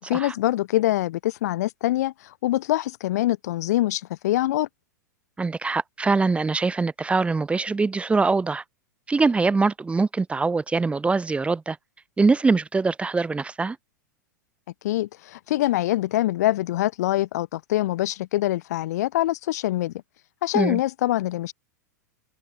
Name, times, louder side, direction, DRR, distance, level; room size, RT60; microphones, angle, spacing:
voice 1, 0.1-4.7 14.8-19.9 20.4-21.5, left 15 dB, 60° left, 1.7 m, -24 dB
voice 2, 5.4-8.6 9.1-11.8 12.2-13.8 20.5-20.8, right 4 dB, 10° right, 4.7 m, -23 dB
open air
figure-of-eight pair, 95°, 10 cm